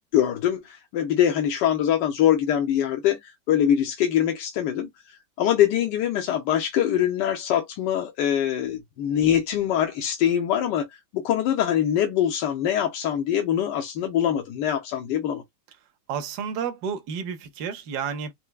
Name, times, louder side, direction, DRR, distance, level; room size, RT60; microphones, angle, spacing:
voice 1, 0.1-10.9 11.1-15.4, left 10 dB, 70° left, 1.2 m, -23 dB
voice 2, 16.1-18.3, right 7 dB, 65° right, 1.1 m, -31 dB
4.4 x 2.1 x 2.2 m
omnidirectional pair, 2.2 m